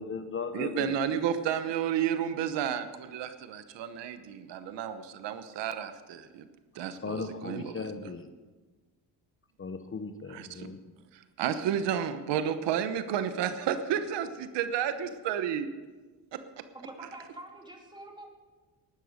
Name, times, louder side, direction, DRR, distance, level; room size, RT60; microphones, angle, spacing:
voice 1, 0.0-0.9 7.0-8.2 9.6-10.8, left 4 dB, 30° left, 9 dB, 0.9 m, -37 dB
voice 2, 0.5-6.4 6.7-8.1 10.3-10.7 11.1-15.7 16.3-16.6, right 9 dB, 85° right, 10 dB, 1.0 m, -32 dB
voice 3, 16.7-18.3, right 1 dB, 10° right, 1 dB, 2.6 m, -46 dB
12.0 x 11.0 x 6.5 m, 1.3 s
cardioid pair, 105°, 41 cm